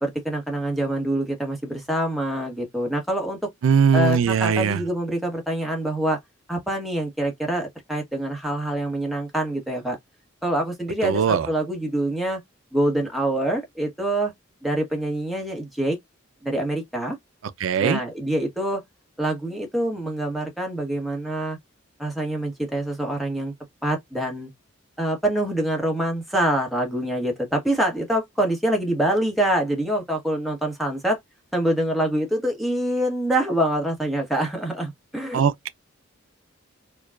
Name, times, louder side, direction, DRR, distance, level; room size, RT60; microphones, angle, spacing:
voice 1, 0.0-3.4 3.9-6.2 6.5-10.0 10.4-12.4 12.7-14.3 14.6-16.0 16.4-17.2 17.8-18.8 19.2-21.6 22.0-23.5 23.8-24.5 25.0-31.2 31.5-35.4, right 1 dB, ahead, 1.0 m, -25 dB
voice 2, 3.6-4.8 11.0-11.5 17.6-18.0 35.3-35.7, right 7 dB, 75° right, 0.4 m, -20 dB
4.6 x 2.2 x 2.3 m
head